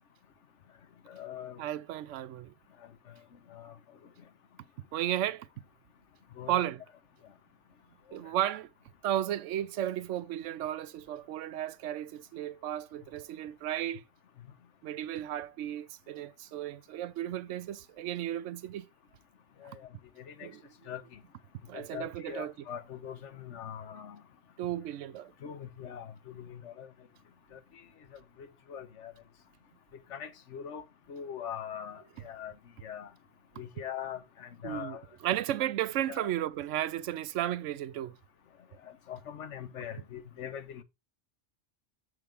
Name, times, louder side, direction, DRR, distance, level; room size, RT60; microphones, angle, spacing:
voice 1, 1.1-1.6 3.1-3.2 3.5-3.8 6.4-6.6 19.6-19.9 20.2-20.5 20.9-21.2 21.7-24.2 25.4-26.9 27.5-27.8 28.1-29.1 29.9-30.8 31.1-32.5 32.8-33.1 33.6-35.0 35.6-35.7 36.1-36.3 38.8-40.8, left 9 dB, 80° left, 1.2 m, -42 dB
voice 2, 1.6-2.5 4.9-5.5 6.5-6.8 8.1-8.7 9.0-14.0 14.8-18.9 20.4-20.6 21.7-22.5 24.6-25.3 34.6-35.0 35.2-38.1, right 12 dB, 85° right, 0.9 m, -34 dB
6.9 x 6.3 x 3.4 m
omnidirectional pair, 1.2 m